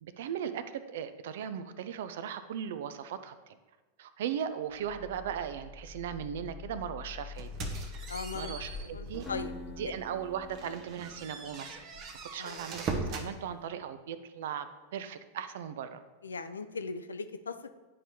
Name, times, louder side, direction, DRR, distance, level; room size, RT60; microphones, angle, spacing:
voice 1, 0.0-3.6 4.0-7.5 8.3-9.2 9.8-11.8 12.3-16.0, right 8 dB, 55° right, 12 dB, 0.4 m, -38 dB
sound 1, 4.7-11.3, left 5 dB, 15° right, 1.5 m, -46 dB
sound 2, 7.4-9.5 9.9-10.1 10.5-13.3, right 3 dB, 35° right, 0.8 m, -39 dB
voice 2, 8.1-8.6 8.8-9.5 12.4-12.6 16.2-17.7, left 4 dB, 75° left, 10 dB, 0.4 m, -39 dB
Acoustic guitar, 9.3-12.3, left 2 dB, 20° left, 1.0 m, -47 dB
9.8 x 4.7 x 2.8 m, 1.2 s
figure-of-eight pair, 90°, 0 cm